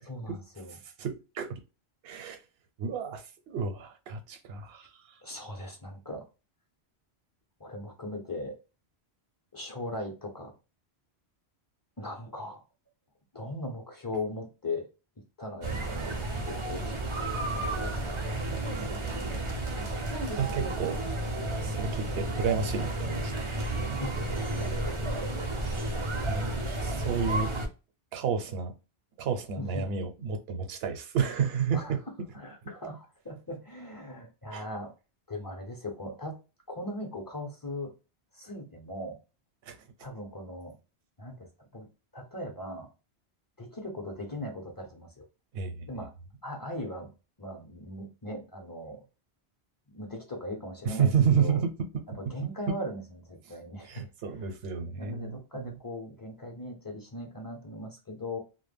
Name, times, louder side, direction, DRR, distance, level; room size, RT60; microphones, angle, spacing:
voice 1, 0.1-0.8 5.2-6.2 7.6-8.6 9.5-10.5 12.0-12.6 13.3-14.9 15.4-18.4 24.0-25.0 29.6-30.0 31.7-31.9 32.3-34.9 35.3-36.4 36.7-37.9 38.3-39.2 40.0-40.8 41.2-41.9 42.1-42.9 43.6-45.1 45.9-46.1 46.4-47.1 47.4-49.0 49.9-51.1 51.4-51.6 52.2-54.0 54.9-58.4, left 1 dB, 25° left, 0.5 m, -39 dB
voice 2, 0.7-1.6 2.0-2.4 2.8-5.2 18.8-19.2 20.4-21.0 21.6-23.4 26.3-26.5 26.8-27.5 28.1-28.7 29.2-32.0 34.5-34.6 39.6-39.8 45.5-45.9 50.8-51.7 52.4-52.7 53.5-53.6 53.8-55.8, right 6 dB, 70° right, 0.8 m, -31 dB
sound 1, 15.6-27.7, right 2 dB, 40° right, 0.4 m, -32 dB
2.1 x 2.1 x 3.3 m
omnidirectional pair, 1.1 m